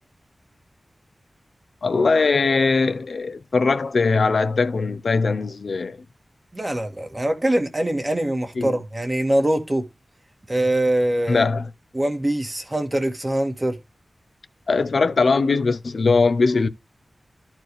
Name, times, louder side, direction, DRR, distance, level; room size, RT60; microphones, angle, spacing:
voice 1, 1.8-6.0 8.6-8.7 11.3-11.6 14.7-16.7, left 4 dB, 75° left, 0.6 m, -20 dB
voice 2, 6.5-9.8 10.5-11.5 11.9-13.8, right 1 dB, 25° right, 1.8 m, -23 dB
13.5 x 4.6 x 3.1 m
wide cardioid pair, 95°, 0 cm